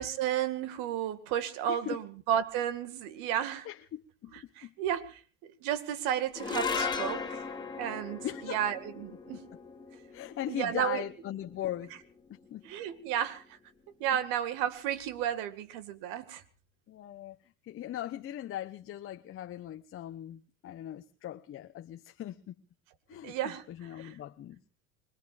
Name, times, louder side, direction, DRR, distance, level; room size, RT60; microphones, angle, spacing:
voice 1, 0.0-3.7 4.3-5.2 5.6-7.4 7.8-9.4 10.5-11.0 12.6-13.4 14.0-16.4 23.2-24.2, right 10 dB, 60° right, 2.3 m, -33 dB
voice 2, 1.7-2.0 3.6-4.3 4.6-4.7 8.2-8.6 9.3-9.4 10.1-12.0 12.3-12.6 16.9-17.4 17.6-22.5 23.1-24.6, left 12 dB, 35° left, 1.0 m, -39 dB
sound 1, 6.3-12.8, left 5 dB, 10° left, 2.5 m, -38 dB
25.5 x 21.0 x 2.6 m
hypercardioid pair, 95°, 38 cm